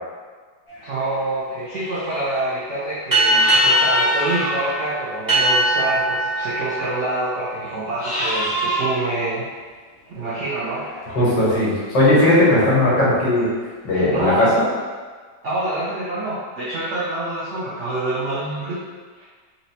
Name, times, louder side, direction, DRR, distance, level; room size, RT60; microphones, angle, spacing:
sound 1, 0.7-1.2 1.6-2.4 3.3-4.9 6.6-7.1 8.0-9.3 10.5-12.1, equal, 55° left, 1.3 m, -27 dB
voice 1, 0.8-9.5 10.1-10.9 12.5-12.7 13.9-14.5 15.4-18.8 19.2-19.3, right 2 dB, 90° right, -8 dB, 0.6 m, -26 dB
sound 2, 3.1-8.2, right 1 dB, 15° right, 0.8 m, -21 dB
voice 2, 11.1-13.5 13.8-14.6, left 1 dB, 75° left, -8 dB, 1.7 m, -17 dB
4.0 x 2.1 x 2.7 m, 1.5 s
omnidirectional pair, 2.0 m